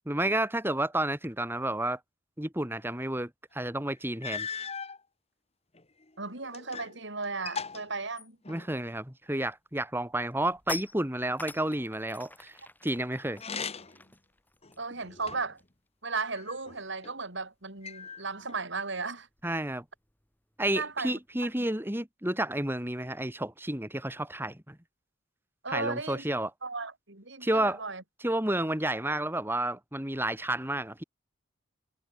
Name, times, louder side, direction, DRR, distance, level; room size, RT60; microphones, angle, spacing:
voice 1, 0.1-2.0 2.4-4.5 8.5-12.6 12.8-13.4 19.4-19.8 20.6-24.8 25.7-26.5 27.4-27.8 28.2-31.0, right 1 dB, 10° right, 2.7 m, -31 dB
sound 1, 3.6-3.7 4.2-5.0 5.7-7.0 7.2-8.8 13.3-14.1 14.6-15.6 16.3-17.1 17.8-18.6, left 5 dB, 30° left, 2.0 m, -39 dB
voice 2, 6.2-8.4 14.8-15.6 16.0-19.3 20.8-21.5 25.6-26.2 26.6-28.0, right 4 dB, 60° right, 5.2 m, -35 dB
sound 2, 9.5-9.6 9.9-15.9 16.1-16.4 16.7-21.7, left 2 dB, 10° left, 6.0 m, -47 dB
head